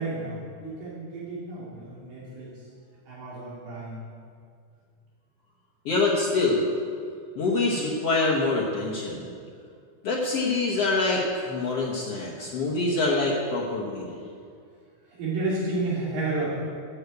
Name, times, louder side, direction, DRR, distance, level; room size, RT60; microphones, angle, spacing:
voice 1, 0.0-2.5 3.1-4.1 15.2-16.5, right 2 dB, 75° right, -7 dB, 4.4 m, -31 dB
voice 2, 5.8-6.7 7.4-9.3 10.0-14.2, left 3 dB, 75° left, -4 dB, 1.4 m, -25 dB
11.5 x 7.3 x 8.3 m, 2.2 s
omnidirectional pair, 4.6 m